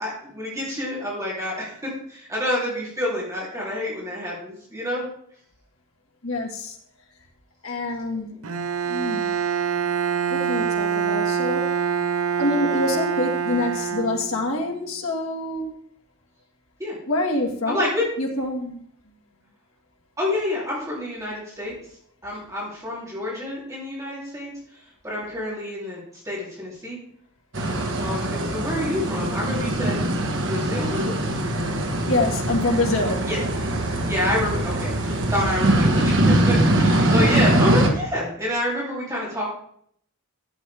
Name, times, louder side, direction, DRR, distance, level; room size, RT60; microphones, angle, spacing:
voice 1, 0.0-5.1 16.8-17.0 17.7-18.0 20.2-21.7 22.2-24.5 25.0-26.0 26.2-27.0 28.0-30.0 30.4-31.2 33.3-33.4 34.1-39.4, left 1 dB, 15° right, -6 dB, 3.3 m, -28 dB
voice 2, 6.2-6.8 7.6-8.5 8.9-9.3 10.3-11.7 12.4-15.8 17.1-17.9 18.2-18.8 32.1-33.2, left 2 dB, 70° left, 1 dB, 1.8 m, -26 dB
Bowed string instrument, 8.4-14.6, right 7 dB, 75° right, 0.7 m, -25 dB
sound 1, 27.5-37.9, right 1 dB, 55° right, 1.5 m, -22 dB
12.0 x 8.1 x 3.5 m, 0.65 s
head